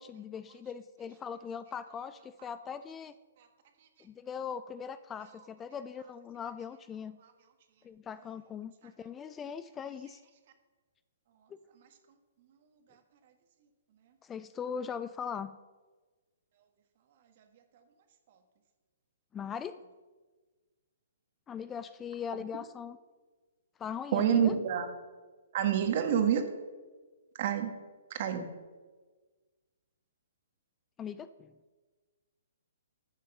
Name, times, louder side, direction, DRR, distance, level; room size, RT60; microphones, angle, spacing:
voice 1, 0.0-3.1 4.0-7.2 7.8-10.2 14.2-15.5 19.3-19.8 21.5-23.0 23.8-24.5 31.0-31.5, left 7 dB, 15° left, 14 dB, 0.3 m, -40 dB
voice 2, 24.1-24.9 25.5-26.4 27.4-27.7 28.1-28.5, right 9 dB, 50° right, 6 dB, 1.6 m, -27 dB
11.0 x 6.3 x 6.7 m, 1.3 s
hypercardioid pair, 140°, 0 cm